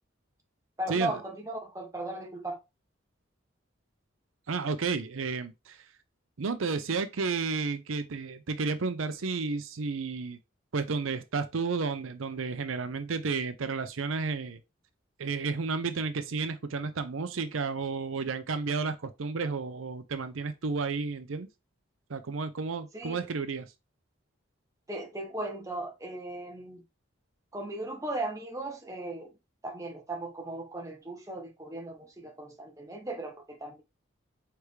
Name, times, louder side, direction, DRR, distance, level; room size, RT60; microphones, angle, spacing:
voice 1, 0.8-2.6 22.9-23.2 24.9-26.8 27.5-29.3 29.6-33.8, right 2 dB, 15° right, 0.8 m, -37 dB
voice 2, 4.5-5.8 6.4-10.4 10.7-14.6 15.2-21.5 22.1-23.7, right 4 dB, 80° right, 0.6 m, -32 dB
4.7 x 3.5 x 3.2 m
head